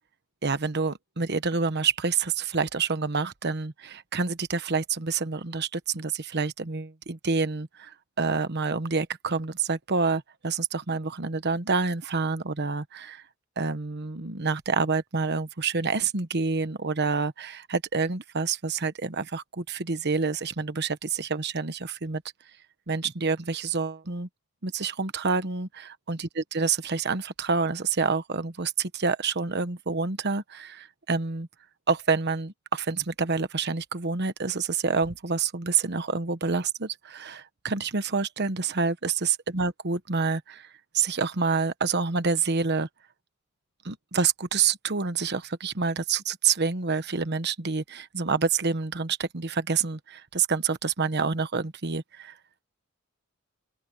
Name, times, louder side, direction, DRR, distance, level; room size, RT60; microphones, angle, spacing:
voice 1, 0.4-13.2 13.6-22.2 22.9-24.3 24.6-31.5 31.9-40.7 40.9-42.9 43.8-52.3, right 4 dB, 50° right, 1.2 m, -28 dB
open air
head